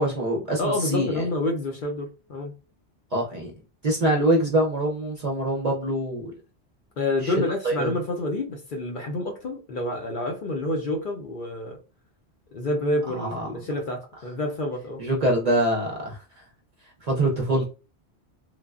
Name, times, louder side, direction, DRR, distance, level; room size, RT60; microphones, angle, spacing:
voice 1, 0.0-1.3 3.1-3.5 3.8-6.3 7.2-7.9 13.1-13.5 15.0-16.2 17.0-17.6, right 1 dB, 50° right, 0.5 m, -24 dB
voice 2, 0.6-2.5 7.0-11.8 12.5-15.0, left 2 dB, 55° left, 0.6 m, -28 dB
3.2 x 2.1 x 2.4 m
omnidirectional pair, 1.1 m